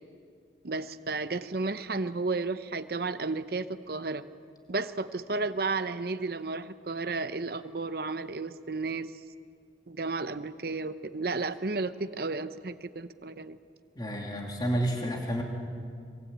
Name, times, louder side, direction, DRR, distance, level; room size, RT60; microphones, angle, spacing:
voice 1, 0.6-4.2 4.7-9.1 9.9-13.6, right 3 dB, 55° right, 11 dB, 0.8 m, -33 dB
voice 2, 14.0-15.4, equal, 20° left, 1 dB, 2.8 m, -30 dB
25.0 x 23.0 x 9.1 m, 2.2 s
head